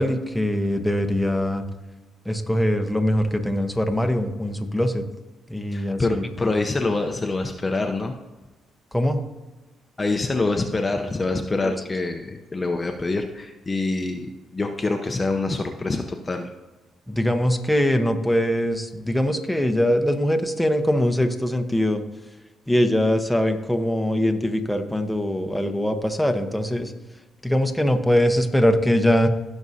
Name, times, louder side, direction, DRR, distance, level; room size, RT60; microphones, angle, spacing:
voice 1, 0.0-1.6 2.3-5.0 5.5-6.3 8.9-9.2 11.6-11.7 17.1-22.0 22.7-26.9 27.4-29.3, equal, ahead, 5 dB, 1.0 m, -22 dB
voice 2, 5.7-8.1 10.0-16.5, left 3 dB, 25° left, 4 dB, 0.7 m, -25 dB
16.0 x 6.3 x 2.8 m, 1.2 s
cardioid pair, 90°, 0 cm